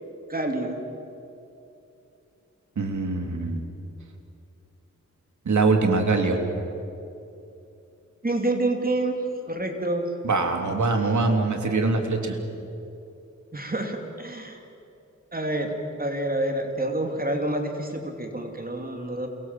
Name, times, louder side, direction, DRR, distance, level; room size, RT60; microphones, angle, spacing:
voice 1, 0.3-0.7 8.2-9.1 9.5-10.1 13.5-14.6 15.3-15.7 16.0-19.3, right 1 dB, 30° right, 3 dB, 3.2 m, -28 dB
voice 2, 2.8-3.6 5.4-6.4 10.2-12.4, right 3 dB, 75° right, 4 dB, 3.3 m, -23 dB
28.0 x 23.0 x 7.8 m, 2.7 s
cardioid pair, 70°, 30 cm